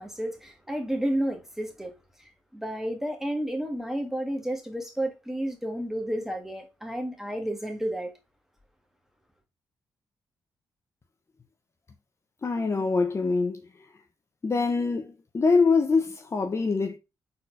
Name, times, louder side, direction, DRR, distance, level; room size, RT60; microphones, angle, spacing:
voice 1, 0.0-1.9 2.2-8.1, right 1 dB, 5° right, 1.5 m, -31 dB
voice 2, 12.4-13.7 14.4-17.0, left 4 dB, 35° left, 0.7 m, -24 dB
4.1 x 4.1 x 2.5 m
cardioid pair, 65°, 8 cm